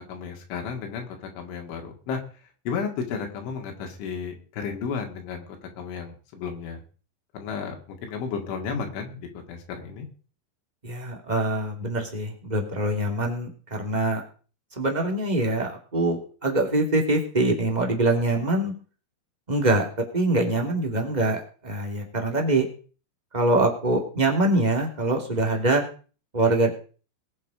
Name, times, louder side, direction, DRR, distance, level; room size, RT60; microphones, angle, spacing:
voice 1, 0.1-2.2 2.7-6.8 7.3-10.1, left 6 dB, 90° left, 2 dB, 4.8 m, -33 dB
voice 2, 10.8-14.2 14.7-18.7 19.5-19.9 20.1-22.6 23.3-25.8 26.3-26.7, right 2 dB, 15° right, 1 dB, 1.4 m, -24 dB
21.0 x 7.4 x 5.0 m, 0.39 s
omnidirectional pair, 5.3 m